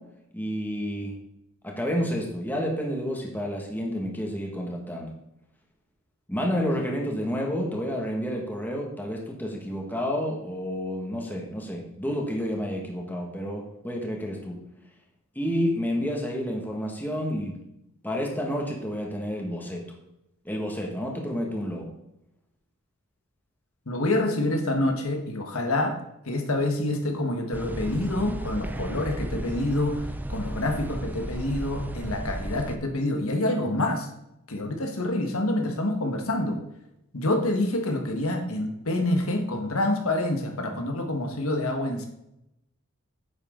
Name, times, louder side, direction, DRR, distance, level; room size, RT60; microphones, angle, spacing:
voice 1, 0.3-1.2 1.6-5.1 6.3-14.6 15.4-17.6 18.0-19.8 20.5-21.9, equal, 10° left, 0 dB, 1.8 m, -30 dB
voice 2, 23.9-26.0 26.2-34.1 34.5-36.6 37.1-42.1, left 1 dB, 85° left, 3 dB, 1.6 m, -27 dB
sound 1, 27.5-32.8, right 1 dB, 10° right, 0.4 m, -34 dB
9.5 x 8.1 x 3.9 m, 0.82 s
head